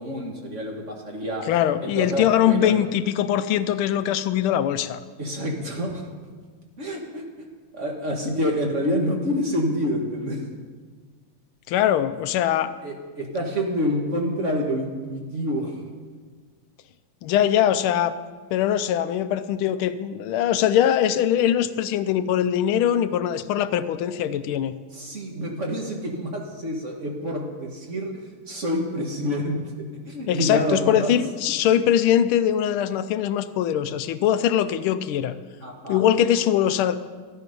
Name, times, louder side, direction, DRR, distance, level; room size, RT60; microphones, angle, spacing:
voice 1, 0.0-1.5 1.8-2.8 5.2-6.1 6.8-7.5 7.7-10.5 12.8-15.8 24.9-29.7 30.0-31.1 35.6-36.0, equal, 40° right, 0 dB, 1.5 m, -27 dB
voice 2, 1.5-5.0 11.7-12.7 17.2-18.1 18.5-24.7 30.3-35.4 35.9-37.0, left 10 dB, 80° left, 12 dB, 1.4 m, -22 dB
13.0 x 9.9 x 5.3 m, 1.5 s
omnidirectional pair, 2.3 m